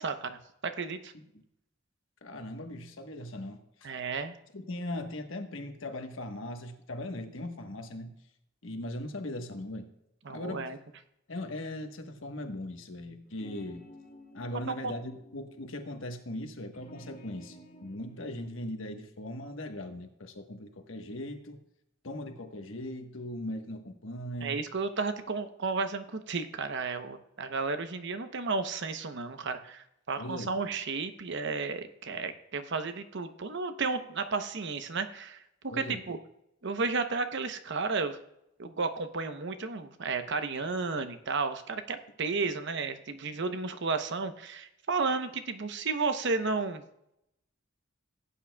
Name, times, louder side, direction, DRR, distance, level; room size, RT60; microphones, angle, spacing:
voice 1, 0.0-1.1 3.8-4.4 10.2-10.8 14.8-14.9 24.4-36.2 36.6-38.2 38.6-46.8, right 4 dB, 60° right, 9 dB, 0.8 m, -33 dB
voice 2, 2.2-3.9 4.5-8.1 8.6-9.9 10.3-10.7 11.3-13.9 14.3-21.6 22.0-24.6 30.2-30.5 35.7-36.0, left 1 dB, 70° left, 6 dB, 1.2 m, -39 dB
sound 1, 13.2-15.7 16.7-18.5, left 1 dB, 40° left, 2.0 m, -52 dB
16.5 x 8.5 x 2.3 m, 0.82 s
head